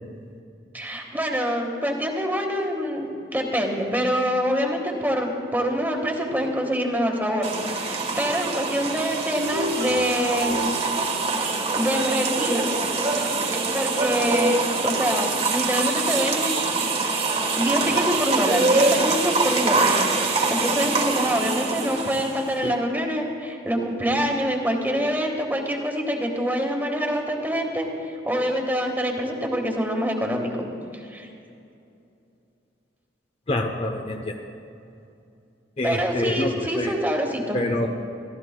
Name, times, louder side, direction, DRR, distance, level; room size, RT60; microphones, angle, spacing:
voice 1, 0.7-7.5 7.7-10.7 11.7-12.6 13.1-13.3 13.7-16.6 17.6-19.9 20.2-30.7 31.1-31.3 35.8-37.6, equal, 10° right, 1 dB, 1.4 m, -25 dB
sound 1, 7.4-22.6, right 3 dB, 35° right, 1.2 m, -24 dB
sound 2, 9.3-12.4, equal, 85° right, 2.2 m, -31 dB
voice 2, 33.5-34.3 35.8-36.9 37.5-37.9, left 1 dB, 35° left, 3 dB, 0.7 m, -26 dB
23.5 x 14.0 x 2.2 m, 2.6 s
head